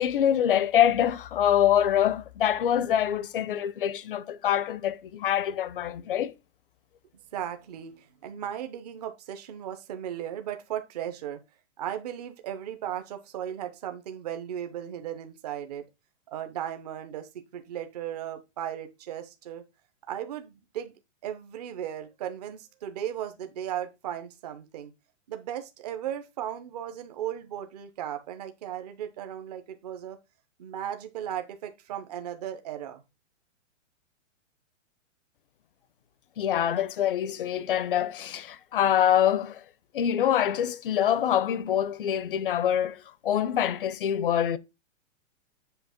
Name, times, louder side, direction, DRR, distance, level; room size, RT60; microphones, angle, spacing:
voice 1, 0.0-6.3 36.4-39.6 39.9-44.6, left 10 dB, 45° left, 0.6 m, -25 dB
voice 2, 7.3-11.4 11.8-15.8 16.3-19.6 20.1-20.9 21.2-24.9 25.3-30.2 30.6-33.0, right 10 dB, 30° right, 0.8 m, -36 dB
7.9 x 3.0 x 5.8 m
hypercardioid pair, 170°, 38 cm